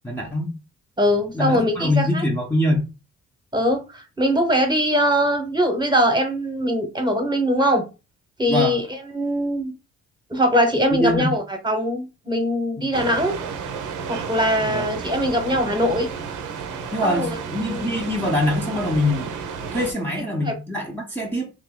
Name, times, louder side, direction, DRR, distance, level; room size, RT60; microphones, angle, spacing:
voice 1, 0.0-0.6 1.3-2.9 8.5-8.8 10.9-11.3 12.8-12.9 14.7-14.9 16.9-19.4 19.7-21.5, left 1 dB, 5° left, 0.7 m, -23 dB
voice 2, 1.0-2.2 3.5-7.8 8.4-8.8 9.1-9.7 10.3-13.4 14.1-16.1 17.0-17.4 17.7-17.8 20.4-20.5, equal, 15° right, 1.0 m, -21 dB
sound 1, 12.9-19.9, right 6 dB, 85° right, 0.7 m, -32 dB
2.9 x 2.6 x 3.7 m
cardioid pair, 90°, 30 cm